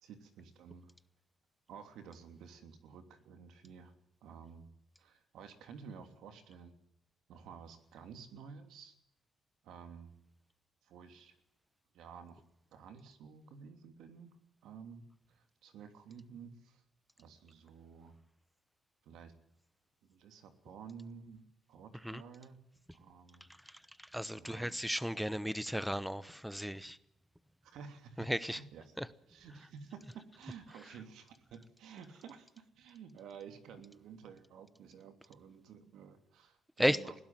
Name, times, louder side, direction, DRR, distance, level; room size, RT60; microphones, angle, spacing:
voice 1, 0.0-0.9 1.7-3.9 4.2-4.7 5.0-6.7 7.3-8.9 9.6-10.1 10.8-11.3 11.9-12.4 12.7-14.4 14.6-16.8 17.2-18.2 19.0-19.3 20.1-22.6 22.9-23.5 24.3-24.7 27.6-29.0 29.3-37.1, right 6 dB, 80° right, 3.1 m, -52 dB
voice 2, 23.7-27.0 28.3-28.6 29.0-29.1 36.8-37.0, equal, ahead, 1.0 m, -34 dB
21.0 x 16.5 x 7.7 m
cardioid pair, 90°, 0 cm